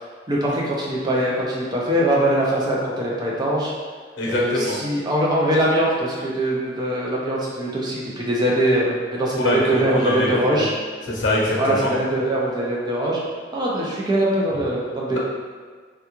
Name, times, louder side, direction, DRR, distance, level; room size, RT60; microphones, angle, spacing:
voice 1, 0.3-3.7 4.3-10.7 11.6-13.2 13.5-15.2, right 1 dB, 20° right, -4 dB, 0.5 m, -22 dB
voice 2, 4.2-4.8 9.4-10.7 11.1-11.9, left 1 dB, 85° left, -3 dB, 0.7 m, -24 dB
3.4 x 2.3 x 2.9 m, 1.5 s
head